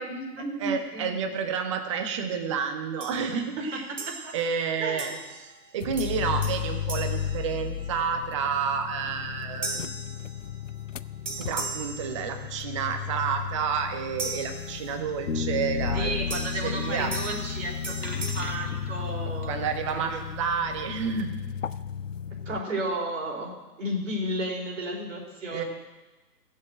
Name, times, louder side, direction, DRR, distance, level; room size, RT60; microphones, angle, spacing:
voice 1, 0.0-1.1 3.3-3.8 4.1-4.3 4.8-5.2 15.9-20.3 22.5-25.7, right 1 dB, 50° right, 0 dB, 4.3 m, -33 dB
voice 2, 0.6-3.9 4.3-10.1 11.4-16.1 16.6-17.1 19.5-21.3 25.5-25.6, right 6 dB, 20° right, 6 dB, 0.9 m, -30 dB
sound 1, 3.0-3.4 4.0-4.6 5.0-5.6 6.0-8.1 9.6-10.8 11.3-12.7 14.2-15.2 16.3-18.4, right 3 dB, 85° right, 2.0 m, -38 dB
sound 2, 5.8-22.6, left 8 dB, 55° left, 0.5 m, -35 dB
sound 3, 15.3-20.2, left 5 dB, 70° left, 1.3 m, -33 dB
16.0 x 7.5 x 7.8 m, 1.2 s
figure-of-eight pair, 130°, 49 cm